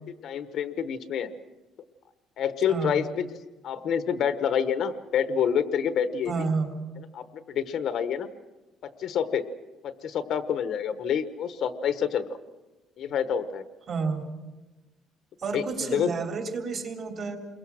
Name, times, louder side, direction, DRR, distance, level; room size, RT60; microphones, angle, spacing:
voice 1, 0.2-1.3 2.4-3.3 3.6-6.3 7.1-8.3 8.8-9.4 9.8-12.2 13.0-13.6 15.5-16.1, left 8 dB, 50° left, 11 dB, 1.1 m, -27 dB
voice 2, 2.7-3.0 6.2-6.8 13.9-14.3 15.4-17.4, right 4 dB, 40° right, 3 dB, 3.3 m, -30 dB
29.0 x 22.5 x 6.3 m, 1.1 s
cardioid pair, 165°, 0 cm